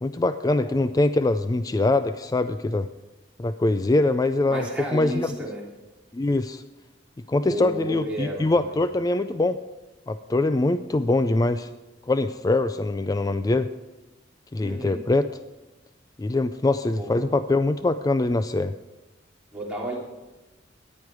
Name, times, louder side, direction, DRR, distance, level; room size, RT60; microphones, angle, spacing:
voice 1, 0.0-2.9 3.4-4.7 4.9-5.3 6.1-6.6 7.3-9.6 10.1-11.7 12.1-13.7 14.5-15.4 16.2-18.7, left 2 dB, 20° left, 11 dB, 0.3 m, -23 dB
voice 2, 4.5-5.6 7.4-8.8 14.6-15.0 17.0-17.3 19.5-20.0, equal, 5° right, -5 dB, 3.3 m, -32 dB
14.5 x 10.5 x 4.7 m, 1.1 s
head